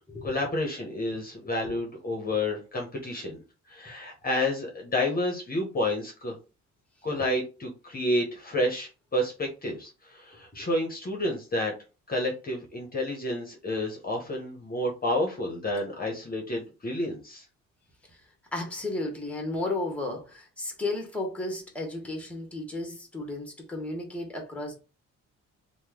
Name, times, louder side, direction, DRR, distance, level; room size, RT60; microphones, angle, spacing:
voice 1, 0.2-3.4 3.7-6.4 7.0-11.7 12.1-17.4, left 1 dB, 30° left, 0.9 m, -30 dB
voice 2, 18.5-24.7, left 2 dB, 5° left, 1.1 m, -33 dB
2.9 x 2.2 x 3.6 m
cardioid pair, 90°, 30 cm